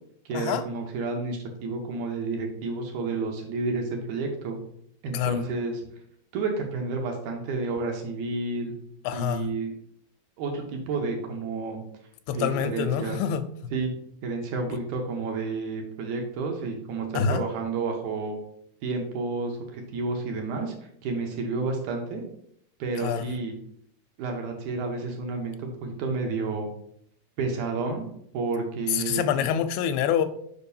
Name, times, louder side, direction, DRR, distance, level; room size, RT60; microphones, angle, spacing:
voice 1, 0.2-4.6 5.0-5.8 6.3-8.7 9.1-9.7 10.4-11.8 12.3-13.2 13.7-13.9 14.2-18.3 18.8-20.7 21.0-22.2 22.8-23.5 24.2-26.7 27.4-28.1 28.3-29.2, right 3 dB, 80° right, 2 dB, 1.7 m, -30 dB
voice 2, 9.0-9.5 12.3-13.4 17.2-17.4 23.0-23.3 28.9-30.3, left 8 dB, 85° left, 9 dB, 2.5 m, -26 dB
6.6 x 5.2 x 2.7 m, 0.68 s
omnidirectional pair, 4.5 m